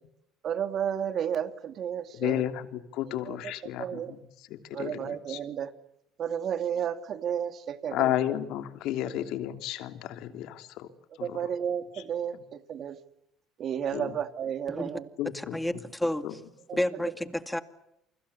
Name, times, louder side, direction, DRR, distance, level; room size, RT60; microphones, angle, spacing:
voice 1, 0.4-2.4 3.0-3.4 3.8-4.1 4.7-5.7 6.2-8.2 9.0-9.1 11.2-13.0 13.6-15.1 16.7-16.8, right 8 dB, 50° right, 9 dB, 2.7 m, -32 dB
voice 2, 2.1-4.2 4.7-5.4 7.9-10.9 11.2-11.4 13.9-14.1 15.2-15.6 16.2-16.3, left 13 dB, 70° left, 8 dB, 3.1 m, -32 dB
voice 3, 15.3-16.4 16.8-17.6, left 1 dB, 5° left, 10 dB, 2.3 m, -30 dB
29.0 x 24.5 x 7.1 m, 0.84 s
supercardioid pair, 100°, 0 cm